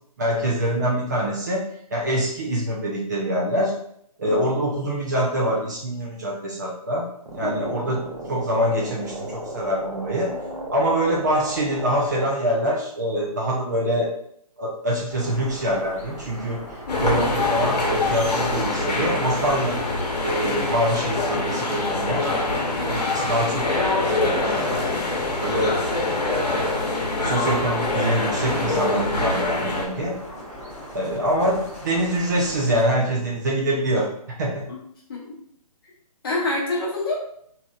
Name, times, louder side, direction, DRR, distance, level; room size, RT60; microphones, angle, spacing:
voice 1, 0.2-1.6 1.9-3.7 4.2-7.1 7.3-8.0 8.3-10.3 10.7-14.1 14.6-16.6 17.0-19.8 20.2-22.3 22.8-23.8 24.1-24.9 25.4-25.8 26.5-26.9 27.2-30.2 30.9-34.1 34.4-34.6, right 1 dB, 30° right, -4 dB, 0.5 m, -24 dB
sound 1, 7.2-12.2, right 1 dB, 75° right, 1.2 m, -36 dB
voice 2, 10.3-10.6 16.9-17.1 20.4-20.5 22.8-23.1 30.3-30.4 34.7-34.8 35.1-35.3 36.2-37.2, left 2 dB, 35° left, -4 dB, 0.9 m, -29 dB
sound 2, 15.1-32.8, equal, 10° left, 1.1 m, -39 dB
sound 3, 16.9-29.8, left 2 dB, 80° left, 0.9 m, -24 dB
3.2 x 2.7 x 2.3 m, 0.69 s
hypercardioid pair, 160°, 20 cm